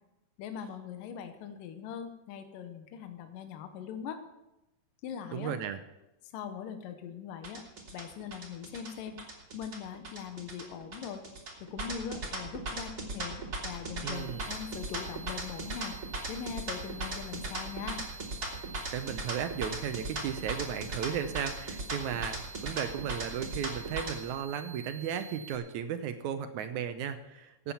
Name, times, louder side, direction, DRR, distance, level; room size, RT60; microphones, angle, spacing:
voice 1, 0.4-4.2 5.0-5.5 6.3-7.6 7.9-9.2 9.5-11.2 11.6-16.0 16.3-18.0, left 8 dB, 80° left, 7 dB, 2.6 m, -41 dB
voice 2, 5.3-5.8 14.0-14.5 18.9-27.7, right 8 dB, 75° right, 9 dB, 1.9 m, -35 dB
sound 1, 7.4-24.1, right 2 dB, 30° right, 2.5 m, -38 dB
sound 2, 14.1-25.5, right 4 dB, 15° right, 1.4 m, -50 dB
15.0 x 8.8 x 7.0 m, 0.95 s
omnidirectional pair, 3.9 m